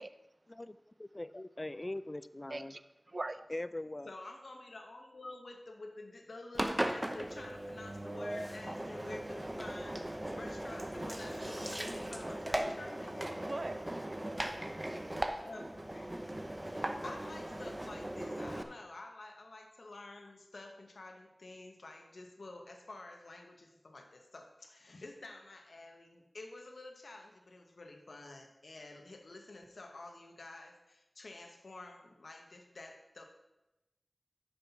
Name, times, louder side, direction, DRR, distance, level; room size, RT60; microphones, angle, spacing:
voice 1, 1.0-2.8 3.5-4.1, left 1 dB, 35° left, 15 dB, 0.3 m, -41 dB
voice 2, 2.5-2.8 3.1-3.5 13.5-14.5 15.0-15.4, right 2 dB, 55° right, 12 dB, 0.5 m, -42 dB
voice 3, 4.1-13.9 15.4-16.3 16.7-33.2, left 2 dB, 90° left, 3 dB, 1.0 m, -49 dB
Engine, 6.5-18.6, right 1 dB, 25° right, 0.8 m, -38 dB
9.9 x 5.7 x 5.7 m, 0.96 s
wide cardioid pair, 50°, 0 cm